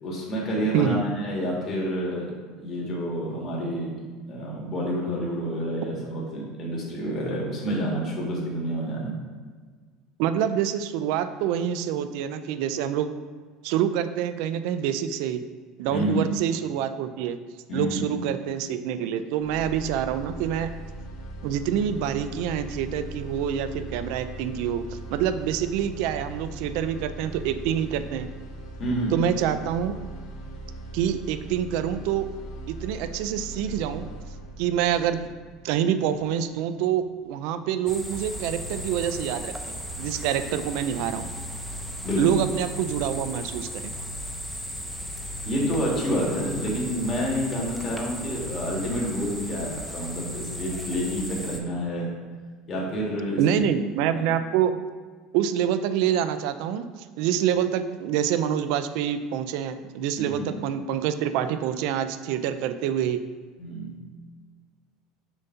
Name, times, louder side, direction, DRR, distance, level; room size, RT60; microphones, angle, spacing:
voice 1, 0.0-2.3 2.6-4.0 4.2-9.2 15.9-16.2 17.7-18.2 28.8-29.2 42.0-42.4 45.4-52.1 52.7-53.6 54.0-54.3 60.2-60.5 63.6-64.0, equal, 35° left, -3 dB, 1.7 m, -29 dB
voice 2, 10.2-13.1 13.6-15.4 15.8-17.4 17.7-20.7 21.4-28.3 29.1-29.9 30.9-32.3 32.7-34.1 34.6-35.3 35.6-41.3 42.2-43.9 53.4-54.7 55.3-56.9 57.2-63.2, right 9 dB, 70° right, 11 dB, 0.4 m, -26 dB
sound 1, 19.4-37.4, right 1 dB, 70° left, 1.8 m, -40 dB
sound 2, 37.9-51.6, equal, ahead, 0.6 m, -36 dB
7.0 x 2.7 x 5.6 m, 1.5 s
cardioid pair, 140°, 0 cm